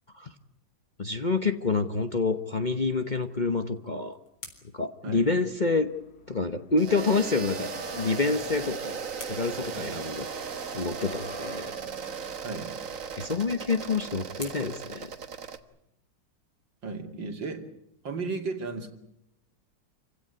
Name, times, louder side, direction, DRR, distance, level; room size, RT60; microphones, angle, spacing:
voice 1, 1.0-4.2 4.7-5.9 6.3-10.3 10.7-11.7 13.2-15.1, left 4 dB, 30° left, 7 dB, 1.0 m, -28 dB
sound 1, 3.5-6.0 8.1-10.5 12.8-15.9, left 3 dB, 85° left, 4.9 m, -51 dB
sound 2, 5.2-6.3 6.6-14.5, left 7 dB, 55° left, 2.0 m, -49 dB
sound 3, 6.8-15.6, right 6 dB, 45° right, 1.6 m, -37 dB
voice 2, 12.4-12.7 16.8-17.6 18.0-18.9, right 4 dB, 80° right, 4 dB, 3.4 m, -34 dB
28.0 x 16.5 x 9.7 m, 0.80 s
omnidirectional pair, 2.0 m